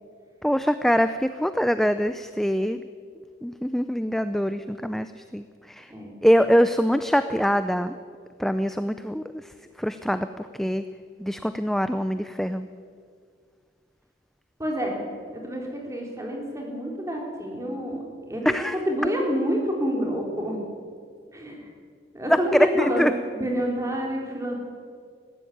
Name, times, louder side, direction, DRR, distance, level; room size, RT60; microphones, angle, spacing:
voice 1, 0.4-2.8 3.4-5.9 6.2-7.9 8.4-10.8 11.2-12.7 18.4-18.8 22.3-23.1, equal, ahead, 10 dB, 0.5 m, -24 dB
voice 2, 14.6-15.0 15.3-18.5 18.9-20.6 21.3-21.7 22.1-23.1 23.3-24.6, equal, 15° right, 0 dB, 3.8 m, -28 dB
19.5 x 15.0 x 9.4 m, 2.1 s
head